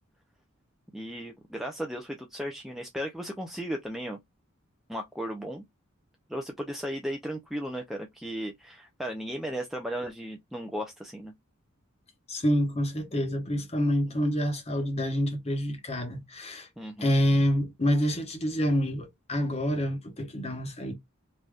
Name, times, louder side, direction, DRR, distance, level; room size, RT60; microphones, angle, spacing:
voice 1, 0.9-4.2 4.9-5.6 6.3-11.3 16.8-17.1, equal, ahead, 0.4 m, -35 dB
voice 2, 12.3-16.7 17.0-20.9, equal, 30° left, 0.9 m, -27 dB
3.3 x 2.6 x 2.3 m
head